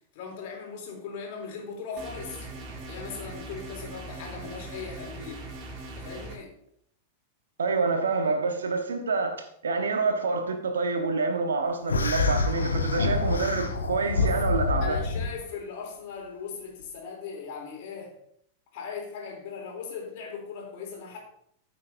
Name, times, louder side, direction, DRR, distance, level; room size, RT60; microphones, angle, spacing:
voice 1, 0.1-2.5 2.9-5.4 6.0-6.5 14.2-14.4 14.8-18.1 18.7-21.2, left 5 dB, 50° left, 0 dB, 3.3 m, -39 dB
sound 1, 2.0-6.4, right 2 dB, 35° right, 2.4 m, -40 dB
voice 2, 7.6-14.9, right 4 dB, 70° right, 6 dB, 1.3 m, -27 dB
sound 2, 11.9-15.3, left 3 dB, 75° left, 1.3 m, -26 dB
14.5 x 6.7 x 2.7 m, 0.69 s
figure-of-eight pair, 90°, 0 cm